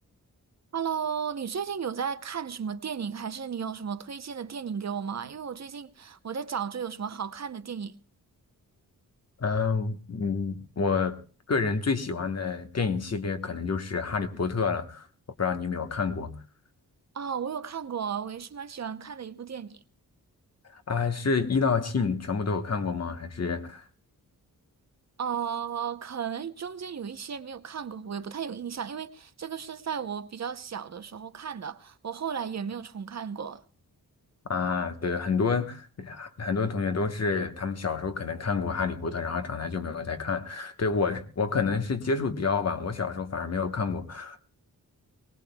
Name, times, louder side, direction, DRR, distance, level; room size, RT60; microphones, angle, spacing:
voice 1, 0.7-7.9 17.1-19.8 25.2-33.6, right 7 dB, 50° right, 0.7 m, -34 dB
voice 2, 9.4-11.2 11.5-15.1 15.4-16.3 20.7-23.8 34.5-44.4, left 4 dB, 45° left, 1.2 m, -28 dB
23.0 x 18.0 x 2.2 m
wide cardioid pair, 105°, 36 cm